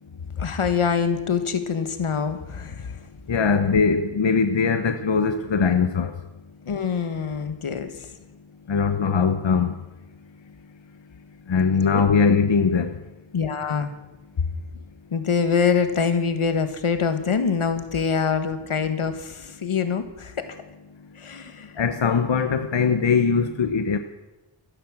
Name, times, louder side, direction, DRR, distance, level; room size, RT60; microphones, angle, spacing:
voice 1, 0.4-3.0 6.7-8.1 11.8-12.1 13.3-13.9 14.4-14.5 15.1-20.6 21.2-21.7, left 6 dB, 85° left, 9 dB, 1.5 m, -25 dB
voice 2, 3.3-6.1 8.7-9.7 11.5-13.0 21.8-24.0, left 5 dB, 65° left, 8 dB, 1.0 m, -21 dB
13.5 x 11.5 x 7.3 m, 1.0 s
wide cardioid pair, 85°, 49 cm